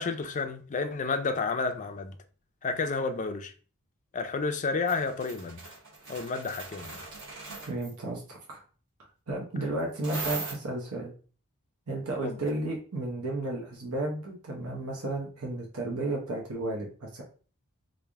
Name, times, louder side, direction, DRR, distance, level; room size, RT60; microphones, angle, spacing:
voice 1, 0.0-2.1 2.6-3.5 4.1-5.6 6.1-7.1 12.2-12.4, left 4 dB, 35° left, 0.4 m, -31 dB
sound 1, 4.9-7.9 10.0-10.5, right 4 dB, 55° right, 1.3 m, -39 dB
voice 2, 7.7-8.6 9.3-11.1 11.9-17.2, right 2 dB, 70° right, 0.8 m, -33 dB
3.3 x 2.5 x 3.4 m
head